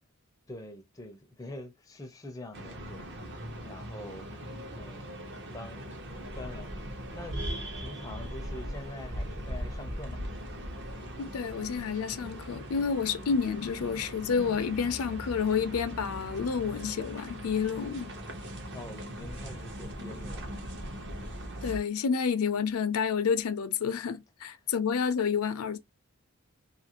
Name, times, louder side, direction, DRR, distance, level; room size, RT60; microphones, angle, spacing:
voice 1, 0.5-3.0 3.6-4.3 4.7-5.9 6.3-10.2 18.7-20.6 24.6-24.7, left 1 dB, 15° left, 0.4 m, -45 dB
sound 1, 2.5-21.8, equal, 50° right, 0.7 m, -40 dB
voice 2, 11.2-18.1 21.6-25.8, left 6 dB, 80° left, 0.4 m, -29 dB
2.6 x 2.5 x 2.8 m
head